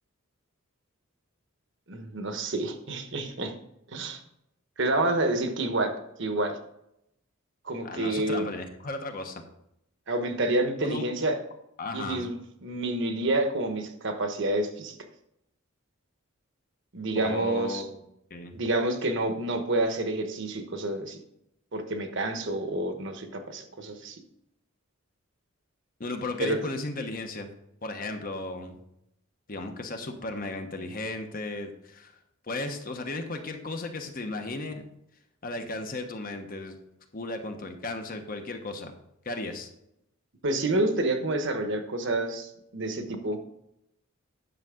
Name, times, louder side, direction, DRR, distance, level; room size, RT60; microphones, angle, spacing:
voice 1, 1.9-3.5 3.9-4.2 4.8-6.6 7.6-8.5 10.1-11.4 11.9-14.9 16.9-17.8 18.5-21.2 21.7-24.2 26.4-26.6 40.4-43.4, right 2 dB, 60° right, 6 dB, 1.1 m, -28 dB
voice 2, 7.8-9.4 10.8-11.0 11.8-12.2 17.1-18.0 18.3-18.5 26.0-27.5 27.8-28.8 29.5-32.1 32.4-34.8 35.4-36.8 37.1-38.9 39.2-39.7, left 2 dB, 40° left, 6 dB, 1.0 m, -35 dB
10.5 x 6.6 x 3.8 m, 0.79 s
head